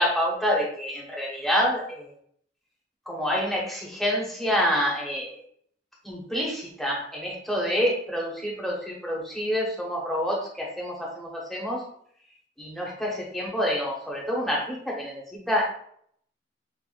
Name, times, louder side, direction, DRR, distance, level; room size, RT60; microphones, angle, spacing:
voice 1, 0.0-2.1 3.1-5.4 6.0-11.8 12.6-15.7, equal, ahead, -4 dB, 1.0 m, -27 dB
6.3 x 2.4 x 2.5 m, 0.64 s
head